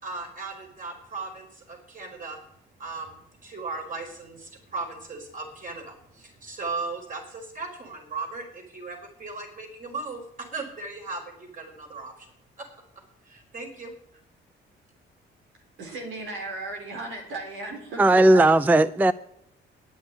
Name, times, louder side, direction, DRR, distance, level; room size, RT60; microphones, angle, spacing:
voice 1, 0.0-2.4 2.8-12.3 12.6-12.7 13.3-13.9, right 3 dB, 40° right, 2 dB, 4.9 m, -37 dB
voice 2, 15.8-18.4, right 2 dB, 85° right, 2 dB, 4.2 m, -35 dB
voice 3, 18.0-19.1, right 2 dB, 10° right, 16 dB, 0.4 m, -17 dB
9.9 x 8.2 x 9.7 m, 0.72 s
cardioid pair, 90°, 20 cm